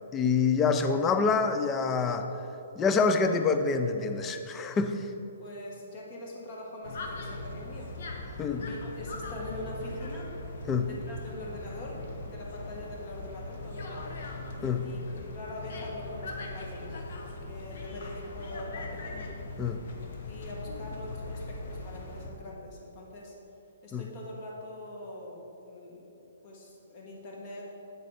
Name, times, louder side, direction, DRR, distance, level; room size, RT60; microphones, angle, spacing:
voice 1, 0.1-2.3 2.8-5.1 8.4-8.6 10.7-10.9 14.6-14.8 19.6-19.8 23.9-24.0, left 5 dB, 15° left, 8 dB, 0.4 m, -26 dB
voice 2, 5.4-7.9 8.5-10.3 10.9-14.1 14.8-19.2 20.3-23.3 23.8-27.7, left 1 dB, 40° left, -2 dB, 1.6 m, -43 dB
sound 1, 6.8-22.3, left 2 dB, 60° left, 0.9 m, -40 dB
8.4 x 4.0 x 5.0 m, 3.0 s
hypercardioid pair, 145°, 0 cm